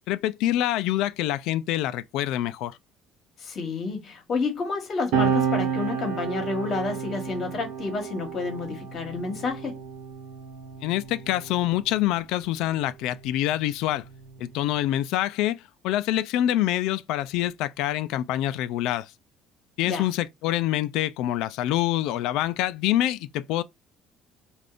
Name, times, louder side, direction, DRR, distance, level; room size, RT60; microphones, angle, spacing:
voice 1, 0.1-2.8 10.8-14.0 14.4-19.1 19.8-23.6, left 13 dB, 80° left, 0.3 m, -26 dB
voice 2, 3.4-9.8 19.8-20.1, left 4 dB, 40° left, 1.2 m, -30 dB
sound 1, 5.1-12.0 13.0-14.9, right 7 dB, 85° right, 0.9 m, -31 dB
3.5 x 2.4 x 2.4 m
cardioid pair, 150°, 0 cm